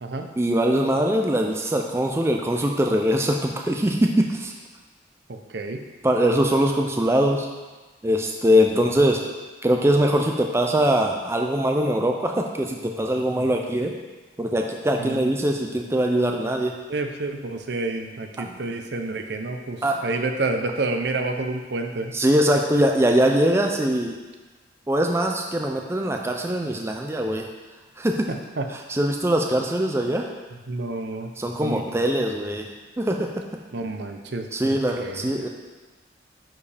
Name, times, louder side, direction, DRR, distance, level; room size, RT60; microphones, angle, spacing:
voice 1, 0.4-4.5 6.0-7.5 8.0-9.2 9.6-13.9 14.4-16.8 18.4-18.6 19.8-20.0 22.1-24.2 24.9-27.5 28.0-28.3 28.9-30.3 31.4-33.3 34.5-35.5, equal, 15° right, 2 dB, 0.4 m, -22 dB
voice 2, 5.3-5.8 15.0-15.3 16.9-22.1 28.3-28.7 30.7-31.3 31.6-31.8 33.7-35.3, right 2 dB, 60° right, 5 dB, 0.6 m, -29 dB
9.9 x 4.7 x 3.4 m, 1.2 s
head